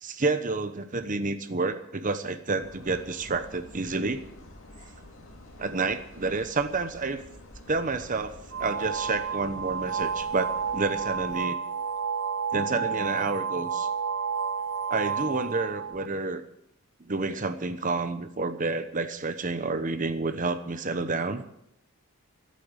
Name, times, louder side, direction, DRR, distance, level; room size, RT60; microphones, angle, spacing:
voice 1, 0.0-4.2 5.6-7.2 7.7-11.6 12.5-13.9 14.9-16.4 17.0-21.4, right 3 dB, 40° right, 9 dB, 1.0 m, -29 dB
sound 1, 2.6-11.4, left 1 dB, 65° left, 2.8 m, -48 dB
sound 2, 8.5-16.1, right 6 dB, 65° right, 0.8 m, -31 dB
14.5 x 8.6 x 8.9 m, 0.78 s
head